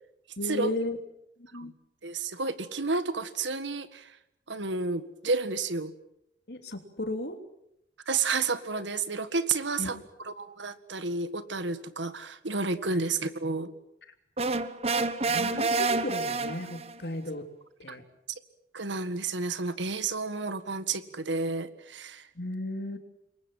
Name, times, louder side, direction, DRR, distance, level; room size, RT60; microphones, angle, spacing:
voice 1, 0.4-1.0 1.5-1.7 6.5-7.4 9.8-10.0 12.9-13.0 15.3-17.5 17.8-18.0 22.3-23.0, left 2 dB, 65° left, 6 dB, 3.1 m, -34 dB
voice 2, 2.0-4.1 4.5-5.9 8.0-10.0 10.2-13.7 17.9-18.0 18.3-18.4 18.7-22.3, right 4 dB, 90° right, 12 dB, 1.8 m, -31 dB
sound 1, 14.4-17.0, right 3 dB, 35° right, 1.1 m, -28 dB
28.0 x 23.0 x 7.7 m, 0.78 s
head